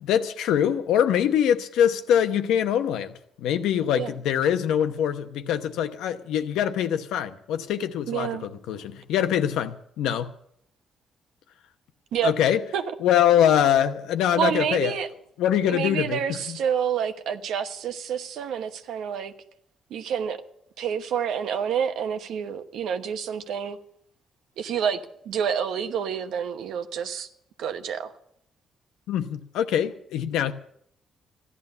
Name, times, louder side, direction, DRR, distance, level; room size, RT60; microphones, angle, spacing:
voice 1, 0.0-10.3 12.2-12.6 13.0-14.9 15.4-16.6 29.1-30.5, left 9 dB, 90° left, 0.9 m, -24 dB
voice 2, 8.1-8.5 12.1-12.3 12.7-12.8 14.4-15.1 15.7-19.3 19.9-20.4 20.8-23.8 24.6-27.3 27.6-28.1, right 8 dB, 80° right, 1.1 m, -28 dB
15.0 x 11.0 x 6.8 m
cardioid pair, 90°, 0 cm